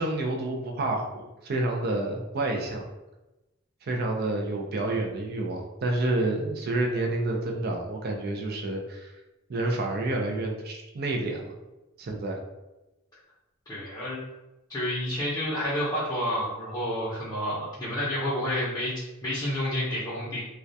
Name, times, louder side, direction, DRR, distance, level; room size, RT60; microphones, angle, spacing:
voice 1, 0.0-2.8 3.8-9.1 9.5-11.5 12.0-12.4, right 2 dB, 50° right, 1 dB, 0.4 m, -29 dB
voice 2, 13.7-14.2 14.7-20.4, equal, 15° left, -10 dB, 0.6 m, -29 dB
2.2 x 2.2 x 2.6 m, 1.0 s
head